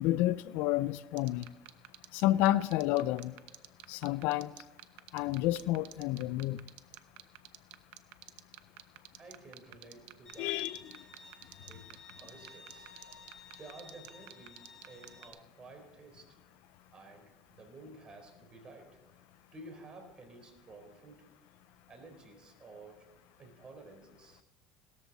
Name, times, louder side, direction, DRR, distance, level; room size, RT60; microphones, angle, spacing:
voice 1, 0.0-1.5 2.1-3.3 3.9-4.5 5.1-6.6 10.4-10.9, left 15 dB, 75° left, 0.6 m, -30 dB
sound 1, 1.2-15.4, right 17 dB, 75° right, 0.9 m, -48 dB
voice 2, 9.1-10.8 11.6-13.0 13.6-16.4 16.9-19.0 19.5-21.3 21.9-23.1 23.4-24.4, right 2 dB, 30° right, 4.1 m, -53 dB
Bowed string instrument, 10.3-15.3, left 3 dB, 25° left, 4.9 m, -54 dB
18.0 x 13.5 x 4.2 m
supercardioid pair, 100°, 3 cm